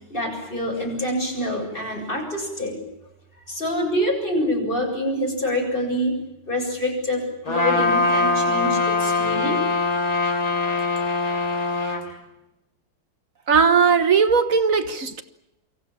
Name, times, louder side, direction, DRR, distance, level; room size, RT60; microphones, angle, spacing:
voice 1, 0.1-2.8 3.5-6.2 6.5-9.6 12.1-12.2, left 1 dB, 25° left, 8.1 m, -26 dB
Trumpet, 7.5-12.0, left 3 dB, 50° left, 4.7 m, -22 dB
voice 2, 13.5-15.2, right 5 dB, 45° right, 1.5 m, -18 dB
28.5 x 24.0 x 7.3 m
omnidirectional pair, 2.2 m